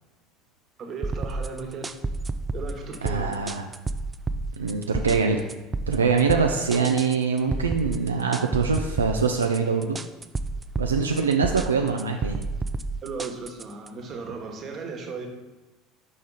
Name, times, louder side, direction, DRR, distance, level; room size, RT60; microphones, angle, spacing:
voice 1, 0.8-2.0 2.5-3.3 13.0-15.3, right 4 dB, 40° right, 3 dB, 1.3 m, -36 dB
sound 1, 1.0-13.9, right 2 dB, 20° right, 0.4 m, -31 dB
voice 2, 3.0-3.7 4.6-5.4 5.9-10.0 10.8-12.4, right 5 dB, 85° right, 3 dB, 0.4 m, -24 dB
5.8 x 5.0 x 3.9 m, 1.1 s
figure-of-eight pair, 65°, 0 cm